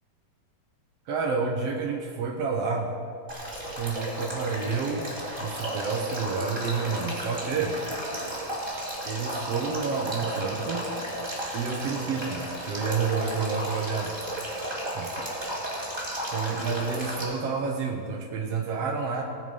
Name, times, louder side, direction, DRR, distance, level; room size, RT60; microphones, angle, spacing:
voice 1, 1.1-2.9 3.7-5.1 5.4-7.8 9.0-10.9 11.5-14.2 14.9-15.1 16.3-19.2, right 5 dB, 75° right, 1 dB, 1.4 m, -29 dB
Male speech man speaking / Stream / Trickle dribble, 3.3-17.2, right 1 dB, 10° right, 2.6 m, -34 dB
19.0 x 9.2 x 5.4 m, 2.3 s
omnidirectional pair, 4.2 m